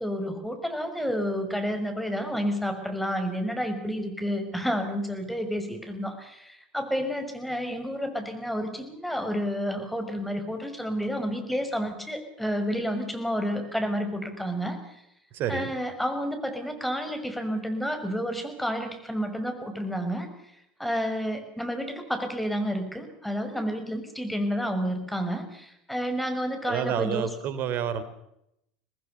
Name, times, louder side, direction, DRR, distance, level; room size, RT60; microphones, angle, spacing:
voice 1, 0.0-14.8 15.5-20.3 20.8-27.3, equal, ahead, 6 dB, 6.2 m, -30 dB
voice 2, 15.3-15.7 26.6-28.0, right 9 dB, 50° right, 13 dB, 3.1 m, -29 dB
25.0 x 19.5 x 6.9 m, 0.78 s
hypercardioid pair, 80°, 4 cm